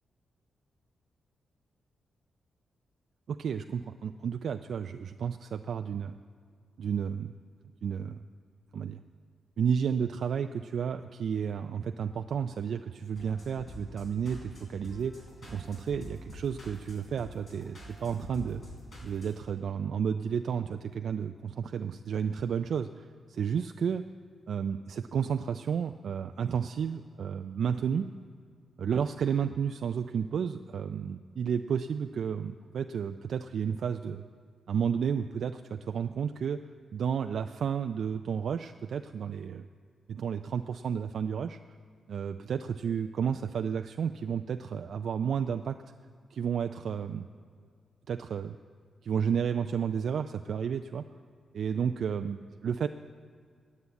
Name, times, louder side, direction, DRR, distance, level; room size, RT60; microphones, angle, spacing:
voice 1, 3.3-6.2 6.8-7.3 7.8-8.2 8.7-9.0 9.6-15.1 15.5-18.6 19.0-24.0 24.5-28.1 28.8-34.2 34.7-36.6 36.9-39.7 40.1-41.6 42.1-45.8 46.3-47.3 48.1-48.6 49.0-51.0 51.5-52.9, right 7 dB, 70° right, 7 dB, 0.3 m, -32 dB
sound 1, 13.1-19.3, left 1 dB, 60° left, 3.8 m, -47 dB
9.7 x 8.4 x 8.1 m, 2.1 s
cardioid pair, 105°, 0 cm